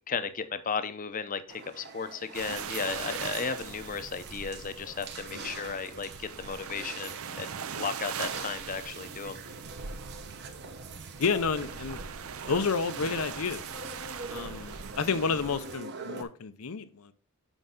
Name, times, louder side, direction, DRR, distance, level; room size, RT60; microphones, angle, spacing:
voice 1, 0.1-9.4, left 5 dB, 40° left, 11 dB, 0.7 m, -35 dB
sound 1, 1.5-16.2, right 4 dB, 50° right, 1.1 m, -45 dB
sound 2, 2.3-15.7, right 6 dB, 65° right, 0.6 m, -41 dB
voice 2, 5.3-5.8 11.2-12.0 12.5-13.6 14.3-17.1, left 5 dB, 75° left, 13 dB, 0.7 m, -30 dB
8.0 x 5.3 x 3.7 m, 0.43 s
head